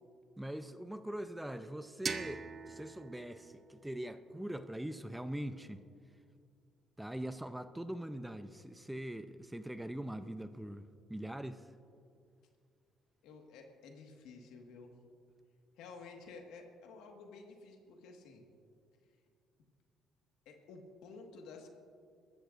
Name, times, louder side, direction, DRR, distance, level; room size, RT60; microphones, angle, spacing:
voice 1, 0.4-5.8 7.0-10.8 11.1-11.7, right 1 dB, 5° right, 10 dB, 0.6 m, -42 dB
sound 1, 2.0-4.9, right 5 dB, 40° right, 0.8 m, -44 dB
voice 2, 13.2-14.9 15.8-18.5 20.5-21.7, left 4 dB, 90° left, 3 dB, 1.7 m, -52 dB
23.0 x 13.5 x 2.6 m, 2.3 s
cardioid pair, 90°, 0 cm